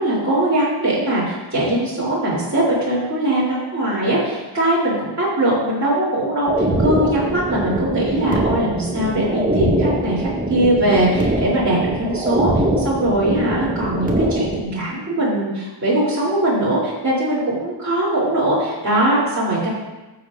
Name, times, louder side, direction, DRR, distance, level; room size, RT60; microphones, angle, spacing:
voice 1, 0.0-19.7, right 1 dB, 40° right, -9 dB, 3.0 m, -21 dB
sound 1, 6.4-14.6, right 1 dB, 20° right, 1.7 m, -22 dB
15.0 x 7.6 x 2.5 m, 1.1 s
wide cardioid pair, 85°, 44 cm